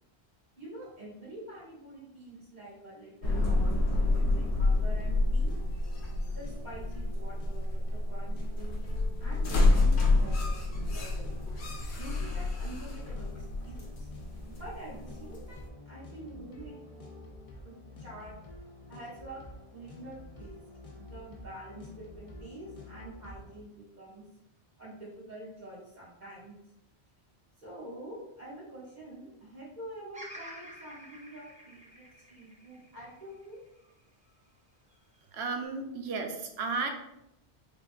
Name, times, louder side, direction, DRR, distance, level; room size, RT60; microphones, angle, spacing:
voice 1, 0.6-5.5 6.3-11.3 12.0-14.1 14.5-17.1 17.6-18.3 18.9-19.4 19.7-20.6 20.9-24.2 24.8-26.5 27.6-33.6, right 1 dB, 40° right, -8 dB, 1.6 m, -47 dB
sound 1, 3.2-15.7, left 2 dB, 80° left, 0.9 m, -28 dB
sound 2, 4.7-23.6, left 1 dB, 40° left, 0.6 m, -48 dB
Bird vocalization bird call bird song, 30.1-34.4 34.9-35.7, equal, 10° right, 0.4 m, -50 dB
voice 2, 35.3-36.9, right 4 dB, 80° right, 4 dB, 0.8 m, -33 dB
3.6 x 3.4 x 2.3 m, 0.85 s
omnidirectional pair, 1.1 m